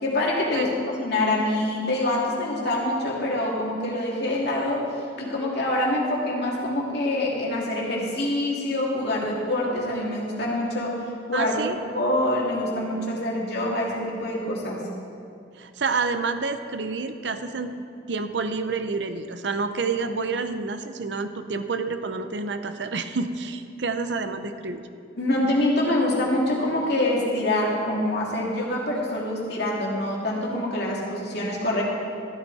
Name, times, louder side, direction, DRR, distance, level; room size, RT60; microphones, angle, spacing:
voice 1, 0.0-4.9 5.2-11.0 11.3-14.8 25.2-31.8, left 1 dB, 60° left, -3 dB, 2.8 m, -25 dB
voice 2, 11.3-11.8 15.6-17.7 18.1-24.8, right 4 dB, 70° right, 9 dB, 0.7 m, -28 dB
14.0 x 11.5 x 4.2 m, 2.4 s
head